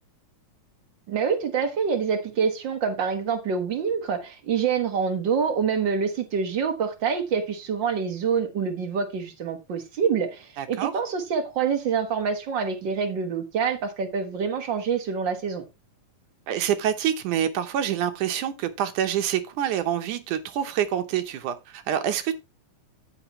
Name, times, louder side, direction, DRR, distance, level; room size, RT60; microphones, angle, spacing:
voice 1, 1.1-15.6, right 6 dB, 50° right, 1.4 m, -26 dB
voice 2, 10.6-10.9 16.5-22.3, right 10 dB, 75° right, 2.3 m, -26 dB
14.0 x 5.9 x 3.1 m
omnidirectional pair, 3.9 m